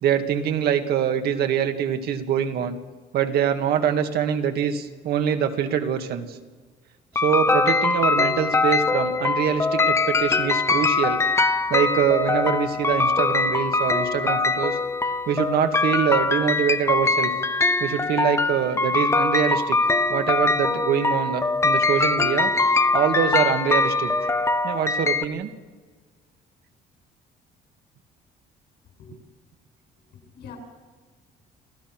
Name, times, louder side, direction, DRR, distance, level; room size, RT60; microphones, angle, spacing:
voice 1, 0.0-2.8 3.1-6.4 7.2-11.2 11.7-14.8 15.3-17.3 17.8-19.8 20.1-22.5 22.9-24.1 24.6-25.5, right 8 dB, 70° right, 6 dB, 2.0 m, -24 dB
sound 1, 7.2-25.2, left 3 dB, 15° left, 1.0 m, -22 dB
voice 2, 30.1-30.6, left 7 dB, 75° left, 2 dB, 7.5 m, -43 dB
28.5 x 15.0 x 6.2 m, 1.4 s
cardioid pair, 110°, 17 cm